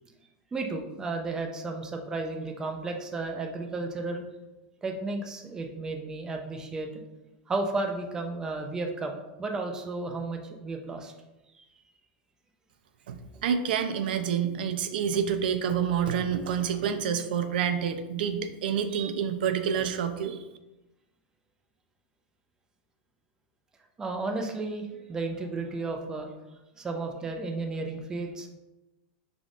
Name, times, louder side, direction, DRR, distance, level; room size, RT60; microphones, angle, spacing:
voice 1, 0.5-4.2 4.8-7.0 7.5-11.1 11.6-11.7 24.0-26.3 26.8-28.5, right 3 dB, 15° right, 3 dB, 0.5 m, -33 dB
voice 2, 13.4-20.4, right 8 dB, 80° right, 7 dB, 0.5 m, -28 dB
5.1 x 3.5 x 2.4 m, 1.0 s
supercardioid pair, 145°, 5 cm